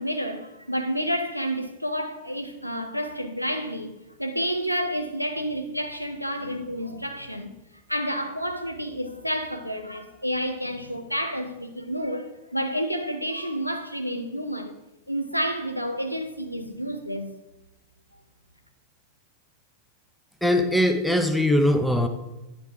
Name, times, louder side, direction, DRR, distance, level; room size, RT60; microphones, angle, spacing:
voice 1, 0.0-7.5 7.9-14.8 15.1-17.3, equal, 90° left, 0.7 m, -30 dB
voice 2, 20.4-22.1, left 1 dB, ahead, 0.7 m, -21 dB
9.6 x 4.5 x 4.8 m
figure-of-eight pair, 90°, 0 cm